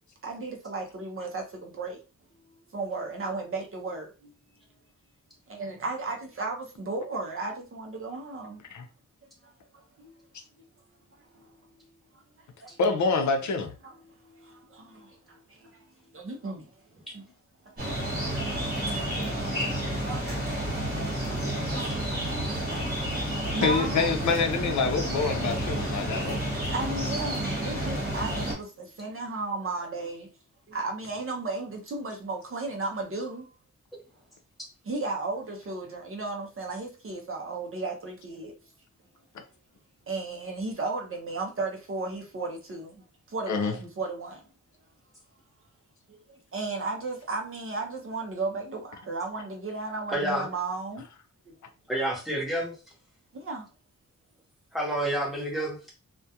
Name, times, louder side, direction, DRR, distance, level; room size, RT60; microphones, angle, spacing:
voice 1, 0.2-2.0 2.7-4.3 5.5-8.6 9.7-10.1 11.3-11.5 12.6-12.8 13.8-15.9 16.1-16.7 17.1-17.2 17.7-24.1 26.0-30.3 30.7-33.5 34.8-38.5 40.1-44.4 46.1-51.1 51.5-51.6 53.3-53.7, right 3 dB, 45° right, 0.5 m, -35 dB
voice 2, 12.8-13.7 23.6-26.5 43.5-43.7, left 4 dB, 65° left, 0.5 m, -26 dB
sound 1, 17.8-28.5, right 1 dB, 25° right, 1.2 m, -30 dB
voice 3, 50.1-50.5 51.9-52.7 54.7-55.9, right 1 dB, ahead, 0.8 m, -29 dB
2.3 x 2.1 x 2.7 m
wide cardioid pair, 180°, 32 cm